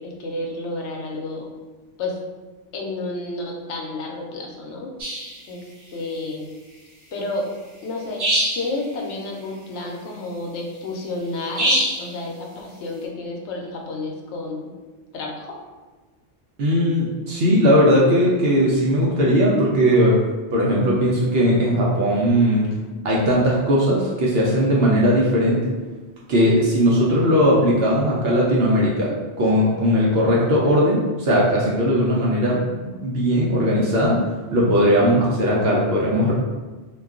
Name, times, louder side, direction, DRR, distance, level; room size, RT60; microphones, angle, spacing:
voice 1, 0.0-1.5 2.0-2.2 2.7-4.9 5.5-6.5 7.1-7.5 7.8-8.2 8.5-14.7 15.1-15.6, left 2 dB, 75° left, 0 dB, 0.9 m, -30 dB
sound 1, 5.0-5.3 8.2-8.8 11.6-12.1, right 1 dB, 35° right, 0.9 m, -22 dB
voice 2, 16.6-20.1 20.5-22.7 23.0-25.7 26.3-29.1 29.4-34.2 34.5-36.3, equal, 65° right, -5 dB, 0.7 m, -18 dB
2.3 x 2.2 x 3.6 m, 1.3 s
omnidirectional pair, 1.2 m